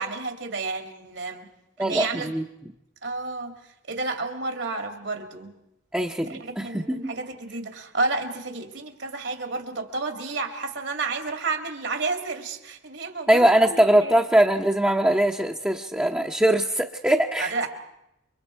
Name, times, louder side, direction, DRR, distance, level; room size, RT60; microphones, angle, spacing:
voice 1, 0.0-1.5 1.8-2.3 3.0-3.5 3.9-5.5 6.2-14.2 17.4-17.7, right 3 dB, 70° right, 4 dB, 2.6 m, -31 dB
voice 2, 1.8-2.4 5.9-7.1 13.3-17.5, right 1 dB, 10° right, 0 dB, 0.9 m, -21 dB
29.0 x 24.5 x 4.6 m, 0.86 s
head